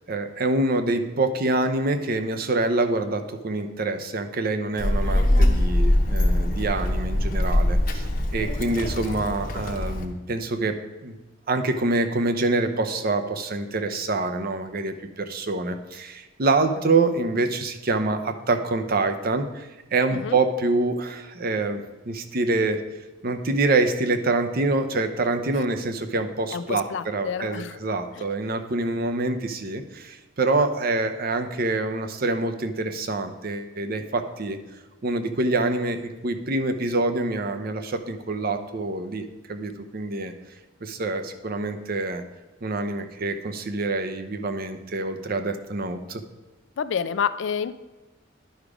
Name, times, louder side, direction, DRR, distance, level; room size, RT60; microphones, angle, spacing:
voice 1, 0.1-8.1 8.3-11.2 11.5-21.8 22.1-22.8 23.2-34.6 35.0-40.3 40.8-42.2 42.6-46.2, right 2 dB, 50° right, 8 dB, 0.7 m, -26 dB
Child speech kid speaking, 4.8-10.1, left 1 dB, 50° left, 0.8 m, -22 dB
voice 2, 26.5-27.8 46.8-47.7, left 7 dB, 70° left, 14 dB, 0.4 m, -28 dB
10.5 x 4.8 x 5.0 m, 1.1 s
head